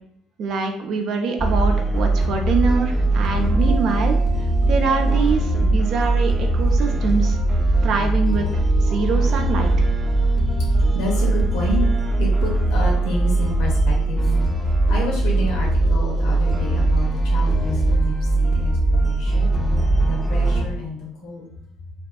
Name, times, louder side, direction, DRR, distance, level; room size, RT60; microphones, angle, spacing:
voice 1, 0.4-4.2 4.7-7.4 7.8-9.7, right 4 dB, 55° right, 4 dB, 0.4 m, -24 dB
sound 1, 1.4-20.6, right 2 dB, ahead, 0.5 m, -20 dB
voice 2, 10.9-11.8 12.2-14.3 14.7-19.5 20.0-21.5, left 2 dB, 70° left, -1 dB, 0.7 m, -30 dB
2.5 x 2.3 x 2.2 m, 0.69 s
hypercardioid pair, 55°, 0 cm